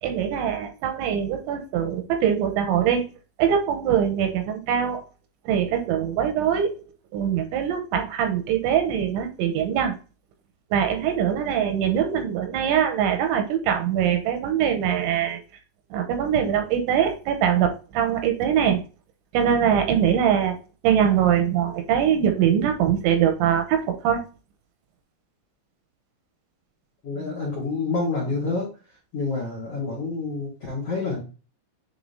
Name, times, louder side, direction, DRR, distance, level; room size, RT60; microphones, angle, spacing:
voice 1, 0.0-3.1 3.4-5.0 5.5-6.8 7.1-10.0 10.7-15.4 15.9-18.8 19.3-20.6 20.8-24.2, right 9 dB, 80° right, 6 dB, 3.0 m, -22 dB
voice 2, 27.0-28.7 29.1-31.2, left 3 dB, 85° left, -3 dB, 1.3 m, -28 dB
9.5 x 3.9 x 2.7 m, 0.33 s
omnidirectional pair, 5.6 m